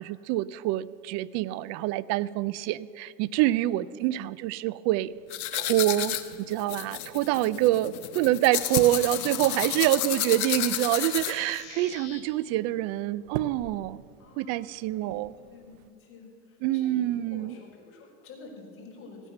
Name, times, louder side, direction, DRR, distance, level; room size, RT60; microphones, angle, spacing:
voice 1, 0.0-5.1 5.5-14.0 14.4-15.3 16.6-17.5, right 15 dB, 40° right, 19 dB, 0.4 m, -26 dB
sound 1, 5.1-15.9, right 10 dB, 80° right, 0.8 m, -44 dB
sound 2, 5.3-11.6, left 12 dB, 85° left, 1.1 m, -31 dB
sound 3, 8.6-12.2, left 7 dB, 55° left, 3.5 m, -44 dB
voice 2, 9.0-9.6 14.2-15.1 15.4-19.3, left 4 dB, 30° left, -3 dB, 4.5 m, -48 dB
16.0 x 9.4 x 6.6 m, 2.2 s
supercardioid pair, 120°, 42 cm